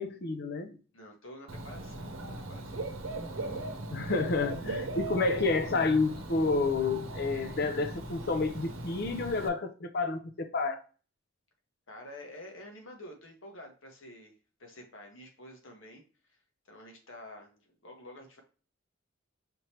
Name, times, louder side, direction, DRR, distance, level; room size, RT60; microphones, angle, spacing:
voice 1, 0.0-0.8 3.9-10.8, left 3 dB, 50° left, 0.6 m, -30 dB
voice 2, 0.9-2.8 11.9-14.3 14.6-16.4 16.6-18.4, left 1 dB, 70° left, 1.3 m, -49 dB
Dog / Bird, 1.5-9.5, right 2 dB, 80° right, 0.8 m, -38 dB
5.1 x 3.2 x 2.9 m
head